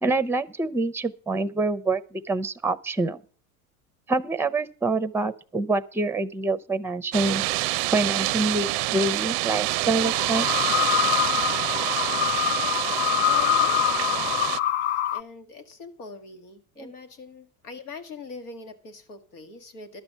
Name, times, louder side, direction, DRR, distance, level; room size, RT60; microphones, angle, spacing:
voice 1, 0.0-3.2 4.1-7.4 7.9-10.5 16.8-16.9, right 2 dB, 5° right, 0.6 m, -26 dB
sound 1, 7.1-14.6, right 20 dB, 55° right, 0.5 m, -27 dB
sound 2, 10.0-15.2, left 11 dB, 55° left, 0.7 m, -25 dB
voice 2, 13.2-14.4 15.1-20.0, left 4 dB, 85° left, 1.7 m, -42 dB
12.0 x 7.0 x 6.8 m
hypercardioid pair, 90°, 45 cm